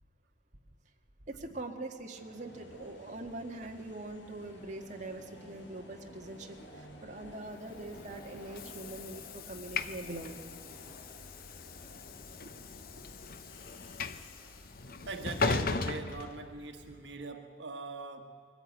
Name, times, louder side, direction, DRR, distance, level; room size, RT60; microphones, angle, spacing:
voice 1, 1.3-10.5, right 2 dB, 40° right, 2 dB, 1.7 m, -43 dB
sound 1, 2.1-15.1, left 1 dB, 85° left, 3.4 m, -53 dB
Train / Sliding door, 7.7-17.0, left 4 dB, 55° left, 0.8 m, -38 dB
voice 2, 15.1-18.5, right 3 dB, 80° right, 5 dB, 1.4 m, -41 dB
22.0 x 14.5 x 9.3 m, 2.2 s
head